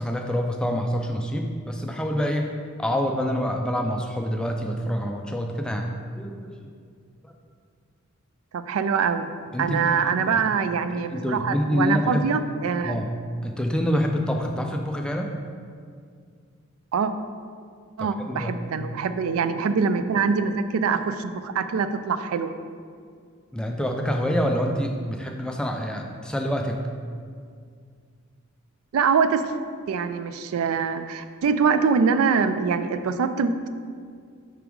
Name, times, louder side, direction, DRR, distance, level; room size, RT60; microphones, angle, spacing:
voice 1, 0.0-2.5 2.8-5.9 6.2-6.6 7.2-7.3 9.5-10.4 10.9-12.3 12.8-13.1 13.4-15.3 18.0-18.5 23.5-26.8, equal, 5° left, 2 dB, 0.3 m, -26 dB
voice 2, 8.5-9.3 9.6-13.0 16.9-17.1 18.0-22.5 28.9-29.5 29.9-33.7, right 5 dB, 80° right, 11 dB, 0.3 m, -24 dB
5.8 x 3.5 x 4.7 m, 2.1 s
head